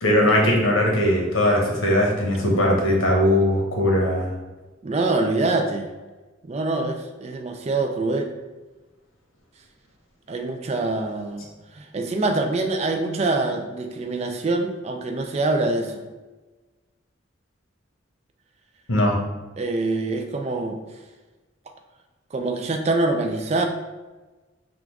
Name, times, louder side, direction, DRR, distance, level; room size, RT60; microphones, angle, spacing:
voice 1, 0.0-4.3 18.9-19.2, left 1 dB, 90° left, -1 dB, 1.1 m, -20 dB
voice 2, 4.8-5.9 6.4-8.3 10.3-16.0 19.6-20.8 22.3-23.7, right 2 dB, 30° right, 5 dB, 0.4 m, -25 dB
3.8 x 2.4 x 4.6 m, 1.2 s
head